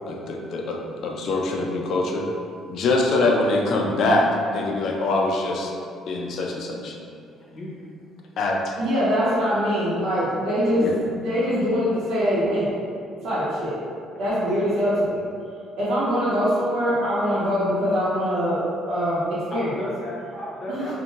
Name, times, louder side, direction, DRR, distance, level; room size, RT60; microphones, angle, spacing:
voice 1, 0.1-2.3 2.7-5.7 6.1-6.9 8.4-8.7 10.8-11.0, left 2 dB, 55° left, 0 dB, 0.3 m, -23 dB
voice 2, 7.4-7.7 14.4-14.6 19.5-20.9, equal, 35° left, -7 dB, 0.7 m, -34 dB
voice 3, 8.8-10.9 11.1-12.7 13.2-13.8 14.2-15.2 15.8-18.6 18.9-19.7 20.7-20.9, equal, 80° right, -12 dB, 0.7 m, -23 dB
2.6 x 2.1 x 2.8 m, 2.3 s
cardioid pair, 140°, 0 cm